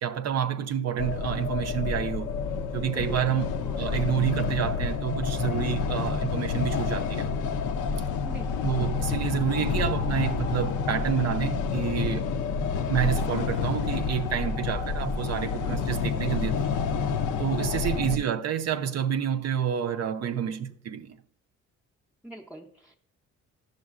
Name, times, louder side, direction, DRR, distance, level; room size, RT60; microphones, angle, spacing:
voice 1, 0.0-2.3 2.7-7.3 8.6-12.3 12.8-16.7 17.4-21.2, right 9 dB, 60° right, 0.5 m, -29 dB
sound 1, 1.0-18.2, left 5 dB, 85° left, 0.5 m, -29 dB
voice 2, 8.2-8.7 17.9-18.4 22.2-23.0, right 1 dB, ahead, 0.5 m, -45 dB
11.5 x 6.3 x 2.4 m
cardioid pair, 90°, 30 cm